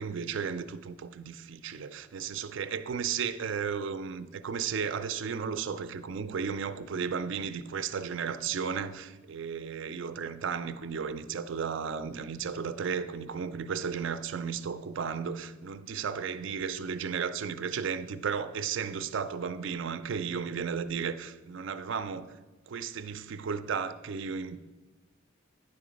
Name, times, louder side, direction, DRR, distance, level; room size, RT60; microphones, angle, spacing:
voice 1, 0.0-22.3 22.7-24.6, right 6 dB, 65° right, 0.4 m, -34 dB
9.8 x 3.8 x 5.1 m
head